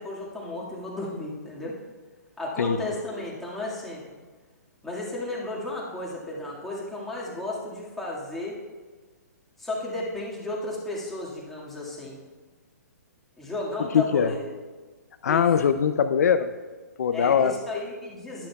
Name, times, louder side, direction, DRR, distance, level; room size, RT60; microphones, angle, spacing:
voice 1, 0.0-1.8 2.4-4.0 4.8-8.6 9.6-12.2 13.4-14.5 15.3-15.5 17.1-18.5, left 2 dB, 5° left, -6 dB, 1.9 m, -33 dB
voice 2, 13.9-14.3 15.2-16.5 17.0-17.5, left 7 dB, 65° left, 9 dB, 0.5 m, -21 dB
11.5 x 10.5 x 2.3 m, 1.4 s
hypercardioid pair, 135°, 9 cm